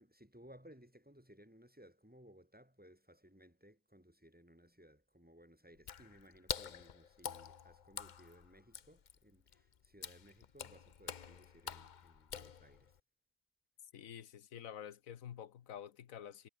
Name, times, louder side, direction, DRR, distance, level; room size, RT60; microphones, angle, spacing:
voice 1, 0.0-12.9, equal, 5° right, 6.5 m, -61 dB
Water / Splash splatter, 5.8-13.0, left 7 dB, 45° left, 0.7 m, -47 dB
voice 2, 13.9-16.5, left 9 dB, 90° left, 1.4 m, -49 dB
omnidirectional pair, 1.4 m